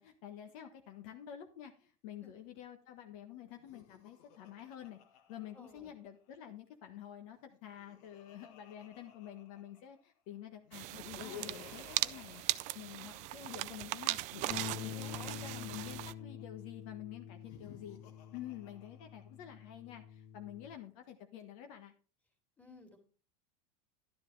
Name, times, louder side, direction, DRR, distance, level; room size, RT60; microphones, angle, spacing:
voice 1, 0.0-5.0 5.3-12.4 12.7-14.2 14.5-18.0 18.3-21.9, left 11 dB, 55° left, 5 dB, 1.2 m, -49 dB
Laughter, 3.6-6.3 7.4-10.0 10.7-13.4 14.0-16.4 17.3-19.4, left 9 dB, 70° left, 1.6 m, -55 dB
voice 2, 5.5-6.0 12.9-13.1 14.9-15.3 22.6-23.0, left 1 dB, 5° left, 1 dB, 2.7 m, -56 dB
sound 1, 10.7-16.1, right 18 dB, 35° right, 0.4 m, -39 dB
sound 2, 14.5-20.7, left 9 dB, 30° left, 1.1 m, -47 dB
11.5 x 10.0 x 3.3 m, 0.38 s
supercardioid pair, 150°, 20 cm